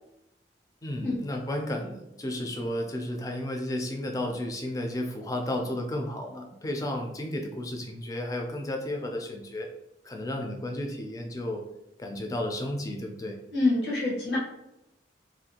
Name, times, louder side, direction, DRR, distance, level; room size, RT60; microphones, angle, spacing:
voice 1, 0.8-9.7 10.0-11.6 12.0-13.4, left 1 dB, 20° left, 3 dB, 0.3 m, -33 dB
voice 2, 13.5-14.4, left 2 dB, 85° left, -4 dB, 0.9 m, -26 dB
2.5 x 2.3 x 2.7 m, 0.88 s
head